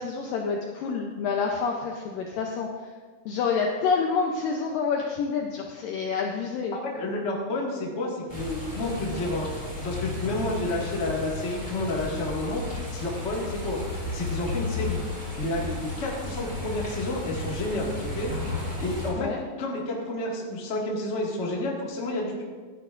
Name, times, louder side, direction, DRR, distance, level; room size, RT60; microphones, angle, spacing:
voice 1, 0.0-2.9 3.3-6.7 19.2-19.4, left 5 dB, 80° left, 1 dB, 2.0 m, -28 dB
voice 2, 6.8-12.6 12.9-13.8 14.1-15.0 15.4-18.3 18.8-19.3 19.6-22.4, left 2 dB, 60° left, -4 dB, 0.7 m, -30 dB
sound 1, 8.3-19.1, left 2 dB, 5° right, 2.5 m, -34 dB
16.0 x 11.0 x 2.5 m, 1.5 s
omnidirectional pair, 4.8 m